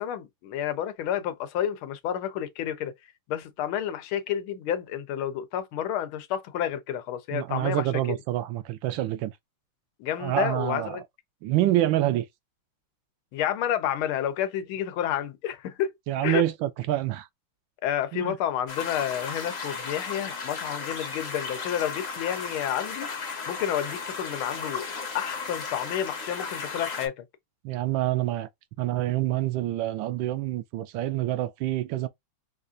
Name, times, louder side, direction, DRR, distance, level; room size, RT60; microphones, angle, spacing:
voice 1, 0.0-2.9 3.3-7.8 10.0-11.0 13.3-15.9 16.2-16.4 17.8-23.1 23.5-27.2, left 10 dB, 85° left, 1.5 m, -30 dB
voice 2, 7.3-9.3 10.2-11.0 11.4-12.3 16.1-17.3 18.1-18.4 27.6-28.5 28.8-32.1, right 14 dB, 75° right, 1.3 m, -27 dB
sound 1, 18.7-27.1, left 5 dB, 45° left, 0.9 m, -35 dB
4.2 x 2.4 x 2.5 m
omnidirectional pair, 2.2 m